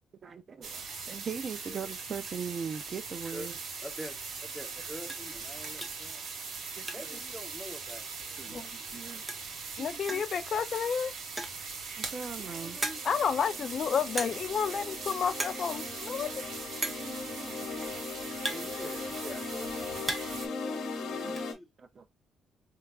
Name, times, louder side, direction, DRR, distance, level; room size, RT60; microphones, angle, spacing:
voice 1, 0.2-3.5 6.8-7.2 8.4-9.3 9.8-10.2 12.0-12.8 17.0-17.9 21.2-21.3 21.8-22.1, right 6 dB, 45° right, 0.4 m, -40 dB
sound 1, 0.6-20.5, right 5 dB, 65° right, 0.9 m, -41 dB
voice 2, 3.8-6.2 6.9-8.9 12.4-13.0 18.5-20.1 20.6-21.7, equal, 5° left, 1.0 m, -46 dB
sound 2, 4.2-4.3 4.6-4.8 5.1-5.3 5.8-6.1 6.4-7.3 7.5-7.6 7.9-8.0 9.0-9.1 9.3-9.6 10.1-10.4 11.2-11.7 12.2-12.3 12.8-13.3 14.2-14.6 14.9-15.1 15.3-15.7 15.9-16.0 16.8-17.1 17.9-19.3 19.7-20.5 20.7-21.5, right 1 dB, 15° right, 0.7 m, -37 dB
voice 3, 9.8-11.1 13.0-16.3, left 7 dB, 55° left, 0.3 m, -30 dB
sound 3, 12.4-21.5, left 4 dB, 70° left, 1.0 m, -39 dB
4.6 x 2.3 x 2.2 m
cardioid pair, 90°, 0 cm